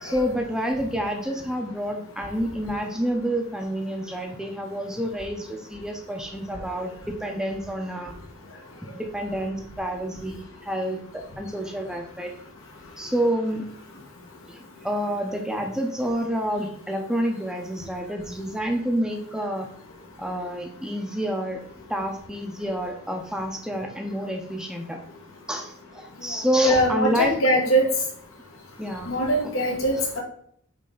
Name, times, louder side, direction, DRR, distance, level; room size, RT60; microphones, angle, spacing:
voice 1, 0.0-8.1 8.9-12.3 13.0-13.7 14.5-19.7 20.2-21.6 21.9-25.0 25.5-27.3 28.8-29.2, equal, 5° right, 2 dB, 0.6 m, -28 dB
voice 2, 26.6-27.8 29.1-30.2, right 1 dB, 80° left, 0 dB, 1.8 m, -21 dB
8.3 x 3.3 x 3.9 m, 0.64 s
head